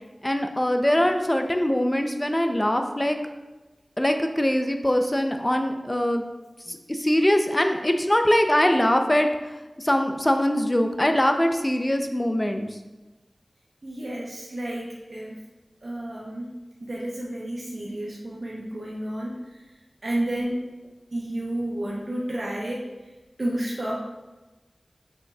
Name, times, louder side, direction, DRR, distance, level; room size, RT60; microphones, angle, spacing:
voice 1, 0.2-3.2 4.0-6.2 6.7-12.7, left 1 dB, 20° left, 5 dB, 0.6 m, -22 dB
voice 2, 13.8-15.4 15.8-16.5 16.8-19.4 20.0-20.6 21.1-22.8 23.4-24.0, right 1 dB, 65° right, -5 dB, 0.9 m, -31 dB
7.1 x 5.7 x 2.4 m, 1.1 s
wide cardioid pair, 60°, 0 cm